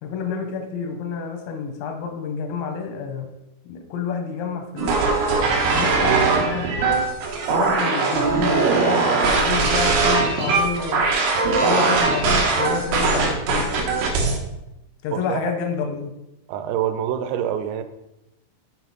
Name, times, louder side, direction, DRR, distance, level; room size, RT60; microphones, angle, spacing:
voice 1, 0.0-3.3 3.7-5.0 5.7-7.1 7.5-11.1 11.6-13.7 15.0-16.2, left 5 dB, 90° left, 5 dB, 3.8 m, -29 dB
sound 1, 4.8-14.4, right 4 dB, 70° right, 3.4 m, -20 dB
voice 2, 16.5-17.8, right 10 dB, 90° right, 10 dB, 3.4 m, -25 dB
7.7 x 6.7 x 4.2 m, 0.92 s
omnidirectional pair, 5.8 m